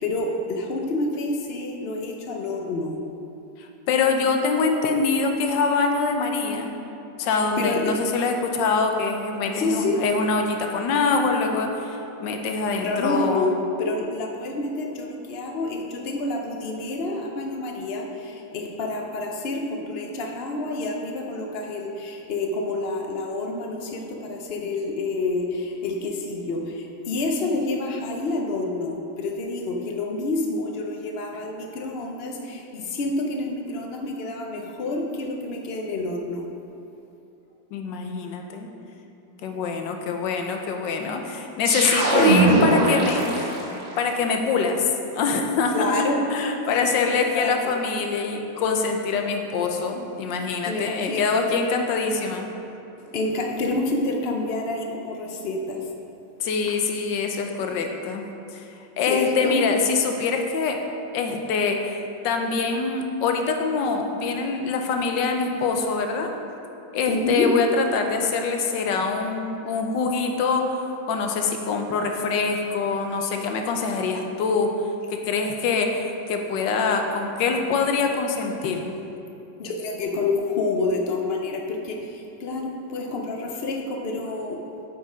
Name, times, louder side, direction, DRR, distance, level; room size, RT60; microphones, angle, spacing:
voice 1, 0.0-3.0 7.3-8.0 9.5-10.0 12.8-36.5 45.7-46.2 46.7-47.8 50.6-51.2 53.0-55.8 59.0-59.6 67.1-67.5 79.6-84.6, left 2 dB, 60° left, 2 dB, 0.6 m, -28 dB
voice 2, 3.9-6.7 7.2-13.5 37.7-38.7 39.4-43.5 44.0-46.0 46.3-52.5 56.4-58.2 58.5-58.6 59.0-60.8 61.1-66.3 66.9-74.7 75.1-78.9, left 4 dB, 75° left, 4 dB, 1.4 m, -24 dB
sound 1, 41.6-43.9, right 2 dB, 40° right, 1.8 m, -20 dB
7.9 x 5.3 x 5.0 m, 2.8 s
omnidirectional pair, 2.0 m